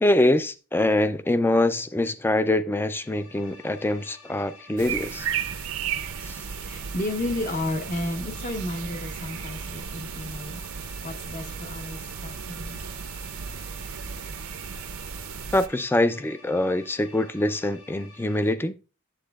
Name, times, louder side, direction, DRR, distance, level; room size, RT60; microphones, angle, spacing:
voice 1, 0.0-5.3 6.3-6.4 15.5-18.8, left 1 dB, 10° left, 0.3 m, -24 dB
sound 1, 2.8-18.5, left 3 dB, 60° left, 1.7 m, -50 dB
sound 2, 4.8-15.7, right 7 dB, 75° right, 0.6 m, -35 dB
voice 2, 6.6-10.6 11.0-12.8, left 1 dB, 35° left, 0.9 m, -32 dB
8.5 x 7.7 x 2.3 m
head